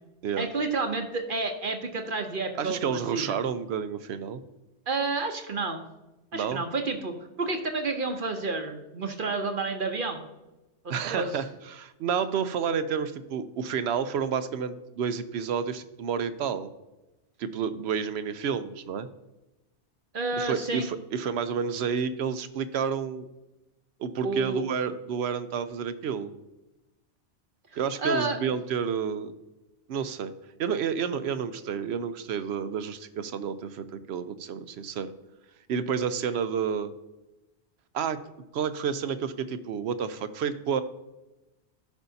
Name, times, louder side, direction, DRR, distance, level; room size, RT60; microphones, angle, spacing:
voice 1, 0.4-3.4 4.9-5.8 6.3-10.2 10.8-11.4 20.1-20.9 24.2-24.7 27.7-28.4, right 3 dB, 55° right, 4 dB, 0.9 m, -30 dB
voice 2, 2.6-4.4 6.3-6.6 10.9-16.7 17.4-19.1 20.4-23.3 24.0-26.3 27.8-29.3 29.9-30.3 30.6-35.1 35.7-36.9 37.9-38.2 38.5-40.8, right 7 dB, 75° right, 11 dB, 0.8 m, -30 dB
12.5 x 5.4 x 2.7 m, 1.0 s
omnidirectional pair, 1.1 m